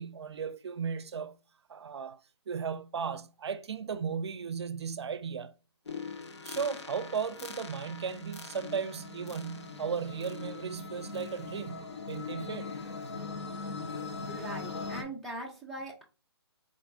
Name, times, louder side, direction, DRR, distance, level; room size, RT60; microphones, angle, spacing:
voice 1, 0.0-1.3 1.7-2.2 2.5-5.5 6.4-12.7, right 6 dB, 75° right, 0.5 m, -36 dB
sound 1, 5.9-15.0, left 4 dB, 85° left, 0.8 m, -41 dB
voice 2, 14.3-16.0, right 1 dB, ahead, 0.5 m, -41 dB
3.8 x 2.5 x 3.4 m
hypercardioid pair, 155°, 14 cm